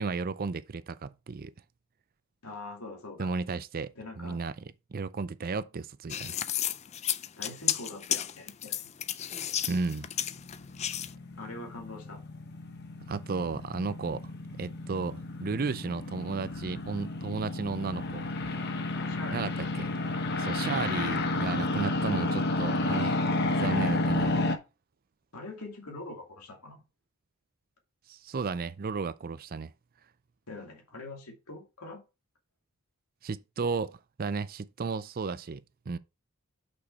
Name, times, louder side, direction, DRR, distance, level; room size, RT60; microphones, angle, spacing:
voice 1, 0.0-1.5 3.2-4.6 4.9-6.4 9.7-10.1 13.1-14.2 14.6-18.6 19.3-19.9 20.4-23.2 23.6-24.4 28.1-29.7 33.2-36.0, right 4 dB, 40° right, 0.4 m, -34 dB
voice 2, 2.4-3.3 4.0-4.4 7.4-8.9 11.3-12.2 18.9-19.7 25.3-26.8 30.5-32.0, left 2 dB, 90° left, 2.6 m, -43 dB
sound 1, 6.1-11.1, left 10 dB, 30° left, 0.4 m, -32 dB
sound 2, 9.9-24.6, left 2 dB, 50° left, 1.0 m, -31 dB
6.2 x 5.8 x 4.6 m
head